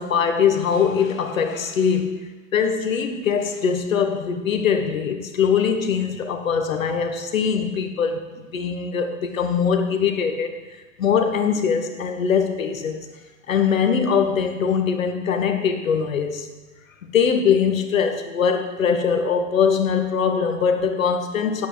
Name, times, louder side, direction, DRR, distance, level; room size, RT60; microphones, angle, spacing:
voice 1, 0.0-2.2 2.5-10.5 11.0-13.1 13.5-16.5 17.0-21.7, left 6 dB, 85° left, 6 dB, 1.4 m, -22 dB
10.5 x 8.2 x 4.5 m, 1.2 s
hypercardioid pair, 100°, 39 cm